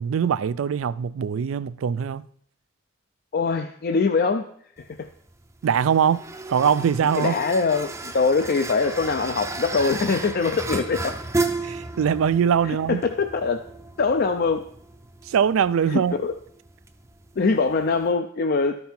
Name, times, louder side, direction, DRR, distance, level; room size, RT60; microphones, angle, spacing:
voice 1, 0.0-2.2 5.6-6.2 6.5-7.4 11.6-13.0 15.2-16.1, right 7 dB, 80° right, 0.4 m, -22 dB
voice 2, 3.3-4.5 4.8-5.1 7.2-11.1 12.7-13.6 14.0-14.6 15.9-16.3 17.4-18.8, left 4 dB, 50° left, 0.4 m, -23 dB
sound 1, 4.8-18.1, right 3 dB, 15° right, 0.5 m, -34 dB
12.5 x 5.4 x 4.4 m
head